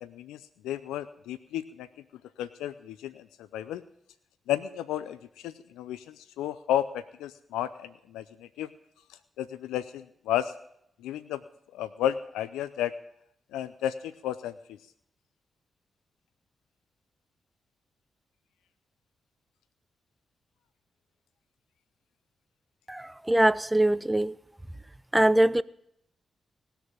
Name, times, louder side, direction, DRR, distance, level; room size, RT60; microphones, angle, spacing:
voice 1, 0.0-1.9 2.4-3.3 3.5-3.8 4.5-8.7 9.4-10.5 11.0-11.4 11.7-12.9 13.5-14.8, left 11 dB, 85° left, 0.5 m, -33 dB
voice 2, 22.9-24.4 25.1-25.6, right 1 dB, 15° right, 0.7 m, -22 dB
18.0 x 6.8 x 8.8 m
hypercardioid pair, 40°, 0 cm